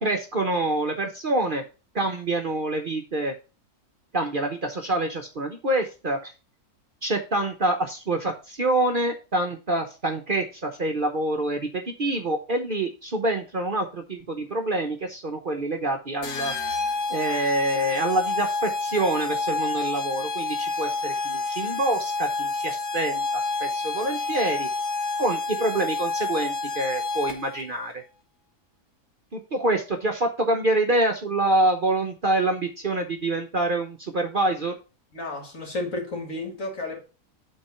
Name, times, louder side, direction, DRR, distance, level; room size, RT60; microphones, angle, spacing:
voice 1, 0.0-1.6 1.9-3.3 4.1-6.3 7.0-16.8 17.1-24.7 25.2-28.0 29.3-34.8, right 2 dB, 40° right, 0.9 m, -26 dB
sound 1, 16.2-27.6, left 3 dB, 85° left, 1.8 m, -29 dB
voice 2, 35.1-37.0, left 2 dB, 60° left, 2.6 m, -32 dB
8.7 x 3.8 x 5.5 m
omnidirectional pair, 1.6 m